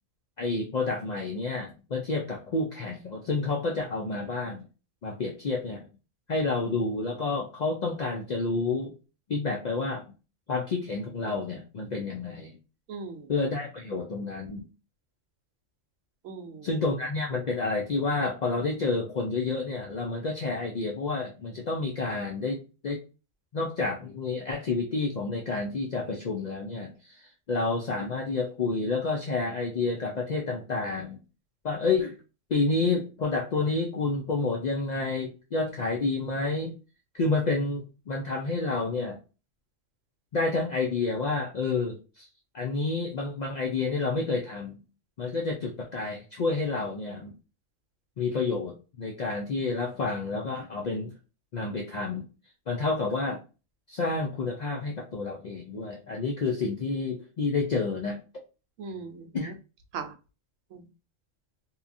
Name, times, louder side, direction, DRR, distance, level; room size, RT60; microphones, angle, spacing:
voice 1, 0.4-4.7 5.0-5.9 6.3-8.9 9.3-10.0 10.5-12.5 13.3-14.7 16.6-23.0 23.5-31.2 31.6-32.2 32.5-36.7 37.1-39.2 40.3-42.3 42.5-44.8 45.2-47.3 48.2-51.1 51.5-52.3 52.7-53.4 53.9-58.2 59.3-59.5, left 3 dB, 70° left, 1 dB, 0.4 m, -29 dB
voice 2, 12.9-13.3 16.2-16.7 58.8-59.5 59.9-60.1 60.7-60.9, right 5 dB, 90° right, 7 dB, 0.9 m, -39 dB
2.8 x 2.3 x 2.5 m, 0.32 s
omnidirectional pair, 1.3 m